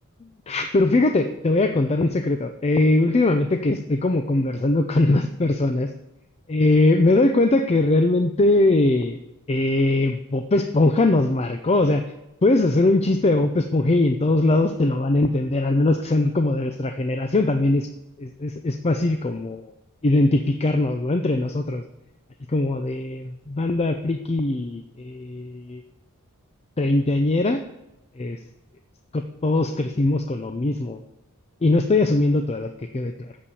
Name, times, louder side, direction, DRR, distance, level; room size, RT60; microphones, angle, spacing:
voice 1, 0.5-5.9 6.5-9.2 9.5-12.0 12.4-17.9 18.2-19.6 20.0-21.8 22.5-25.8 26.8-27.6 28.2-28.4 29.1-31.0 31.6-33.1, left 2 dB, 30° left, 8 dB, 0.5 m, -21 dB
8.4 x 7.3 x 6.8 m, 0.93 s
head